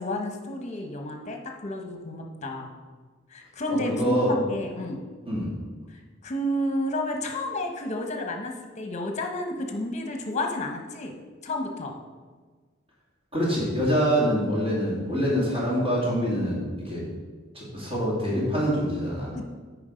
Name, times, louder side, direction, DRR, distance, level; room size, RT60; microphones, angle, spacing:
voice 1, 0.0-2.7 3.3-5.0 5.9-11.2 11.4-12.0 19.3-19.5, left 1 dB, 35° left, 3 dB, 1.1 m, -31 dB
voice 2, 3.7-4.3 5.3-5.5 13.3-17.1 17.5-19.3, equal, 30° right, -6 dB, 2.5 m, -25 dB
9.5 x 4.9 x 5.1 m, 1.4 s
head